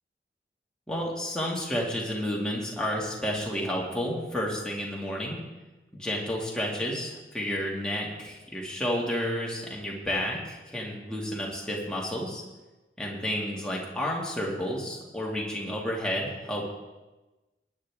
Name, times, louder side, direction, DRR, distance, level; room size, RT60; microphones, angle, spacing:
voice 1, 0.9-5.4 5.9-12.4 13.0-16.7, equal, 5° left, -3 dB, 2.2 m, -31 dB
19.5 x 9.9 x 3.6 m, 1.1 s
head